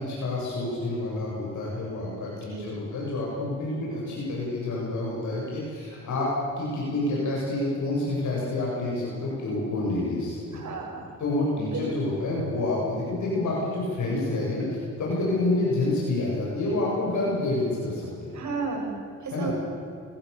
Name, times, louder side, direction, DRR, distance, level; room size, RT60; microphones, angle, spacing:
voice 1, 0.0-6.3 6.6-10.6 11.2-18.3 19.3-19.5, left 2 dB, 70° left, -5 dB, 7.9 m, -28 dB
voice 2, 2.5-2.8 10.5-11.0 11.7-12.1 18.3-19.0 19.2-19.5, right 4 dB, 70° right, 1 dB, 7.2 m, -33 dB
26.0 x 20.0 x 7.2 m, 2.5 s
cardioid pair, 85°, 30 cm